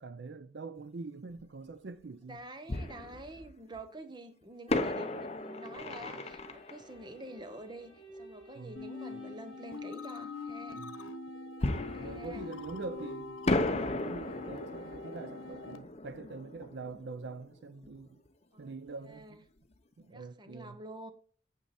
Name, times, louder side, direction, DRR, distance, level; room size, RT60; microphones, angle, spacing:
voice 1, 0.0-2.4 8.6-8.8 10.8-10.9 12.0-18.2 18.6-19.4 20.0-20.8, right 3 dB, 60° right, 0.5 m, -44 dB
Fireworks, 1.4-1.5 2.7-3.8 4.7-8.2 11.6-13.0 13.5-18.0 18.3-18.4 18.9-19.1, left 2 dB, 30° left, 0.8 m, -36 dB
voice 2, 2.3-10.9 11.8-12.5 18.5-18.7 19.0-19.4 20.1-21.1, right 1 dB, 20° right, 1.0 m, -47 dB
sound 1, 4.7-9.7, right 1 dB, ahead, 4.2 m, -53 dB
sound 2, 8.8-15.8, left 3 dB, 90° left, 1.0 m, -43 dB
9.2 x 7.5 x 4.2 m
head